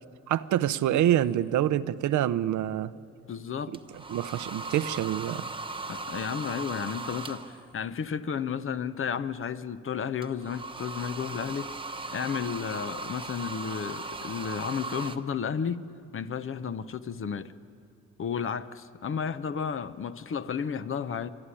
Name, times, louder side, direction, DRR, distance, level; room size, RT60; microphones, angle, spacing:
voice 1, 0.3-2.9 4.1-5.4, right 12 dB, 75° right, 14 dB, 0.7 m, -26 dB
sound 1, 1.1-1.4 3.7-7.8 10.2-15.2, right 3 dB, 15° right, 1.1 m, -38 dB
voice 2, 3.3-3.7 5.9-11.7 12.1-15.8 16.1-17.5 18.2-21.3, left 7 dB, 45° left, 13 dB, 0.8 m, -32 dB
24.0 x 13.0 x 9.9 m, 2.5 s
cardioid pair, 90°, 30 cm